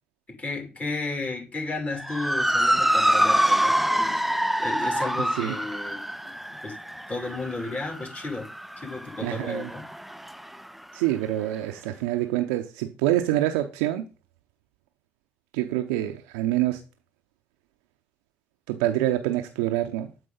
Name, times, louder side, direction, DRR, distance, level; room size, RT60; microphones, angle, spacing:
voice 1, 0.3-4.2 4.6-9.9, left 3 dB, 30° left, 2.5 m, -34 dB
Motor vehicle (road) / Siren, 2.0-10.6, equal, 5° right, 0.5 m, -26 dB
voice 2, 9.2-9.7 10.9-14.0 15.5-16.8 18.7-20.1, right 14 dB, 75° right, 0.6 m, -26 dB
7.9 x 4.8 x 3.8 m
figure-of-eight pair, 45°, 6 cm